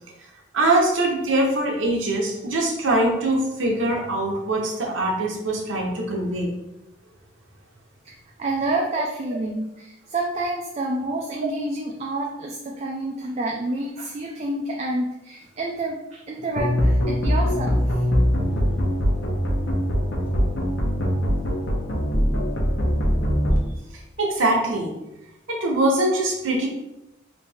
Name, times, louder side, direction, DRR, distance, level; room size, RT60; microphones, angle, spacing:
voice 1, 0.5-6.5 18.4-18.8 24.2-24.9 25.5-26.7, right 1 dB, 85° right, 0 dB, 0.8 m, -23 dB
voice 2, 8.4-17.9, right 2 dB, 35° right, 0 dB, 0.3 m, -28 dB
sound 1, 16.6-23.6, equal, 75° left, 0.8 m, -22 dB
3.2 x 2.6 x 3.4 m, 0.92 s
head